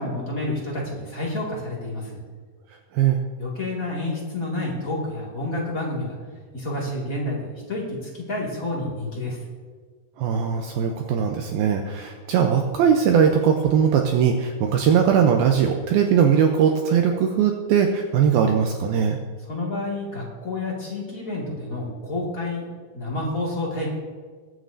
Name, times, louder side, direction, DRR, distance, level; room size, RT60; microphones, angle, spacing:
voice 1, 0.0-2.2 3.4-6.1 6.5-9.4 19.5-23.9, left 2 dB, 30° left, -4 dB, 1.7 m, -29 dB
voice 2, 10.2-19.2, right 7 dB, 85° right, 3 dB, 2.2 m, -20 dB
21.5 x 9.4 x 2.7 m, 1.5 s
omnidirectional pair, 5.1 m